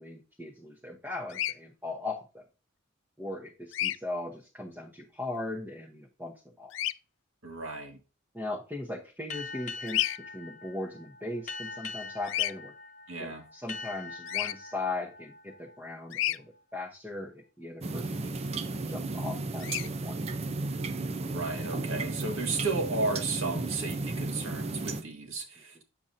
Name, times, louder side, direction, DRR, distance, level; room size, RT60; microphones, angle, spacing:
voice 1, 0.0-2.4 3.2-6.7 8.3-12.7 13.2-18.5 18.9-19.7 20.0-20.2, left 2 dB, 10° right, 0.9 m, -39 dB
Bird vocalization bird call bird song, 1.3-1.5 3.7-4.0 6.7-6.9 9.9-10.2 12.2-12.5 14.3-14.5 16.1-16.4 19.6-19.9, left 14 dB, 65° left, 0.3 m, -30 dB
voice 2, 7.4-8.0 13.1-13.4 21.2-25.8, right 3 dB, 80° right, 1.9 m, -34 dB
sound 1, 9.3-16.6, left 4 dB, 40° left, 0.8 m, -43 dB
sound 2, 17.8-25.0, right 3 dB, 30° right, 0.5 m, -34 dB
8.6 x 7.1 x 2.6 m
head